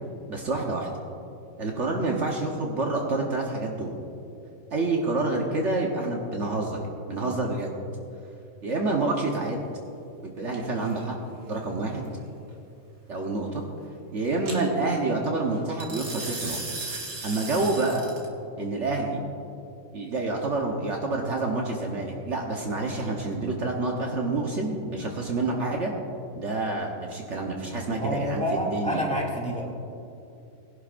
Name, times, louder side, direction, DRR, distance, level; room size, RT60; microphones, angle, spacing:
voice 1, 0.3-0.9 1.6-4.0 4.7-6.8 7.1-7.7 8.6-9.6 10.2-11.2 11.5-12.0 13.1-13.6 14.1-16.6 17.2-18.1 18.6-19.2 19.9-25.9 26.3-28.4 28.7-29.0, right 2 dB, 60° right, 0 dB, 1.3 m, -28 dB
sound 1, 10.5-10.9 14.5-14.6 15.8-18.3, right 3 dB, 80° right, 2.3 m, -36 dB
voice 2, 28.0-29.7, equal, 5° left, -4 dB, 2.3 m, -28 dB
20.5 x 11.0 x 2.5 m, 2.7 s
omnidirectional pair, 1.5 m